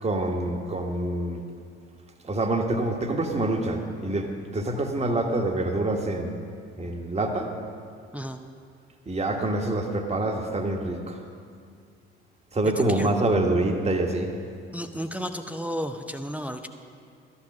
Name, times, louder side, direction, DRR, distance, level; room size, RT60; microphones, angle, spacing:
voice 1, 0.0-1.4 2.2-6.3 6.8-7.5 9.1-11.2 12.5-14.3, right 2 dB, 20° right, 3 dB, 1.4 m, -26 dB
voice 2, 14.7-16.7, equal, 5° right, 5 dB, 0.6 m, -32 dB
13.0 x 9.8 x 6.0 m, 2.2 s
figure-of-eight pair, 45°, 32 cm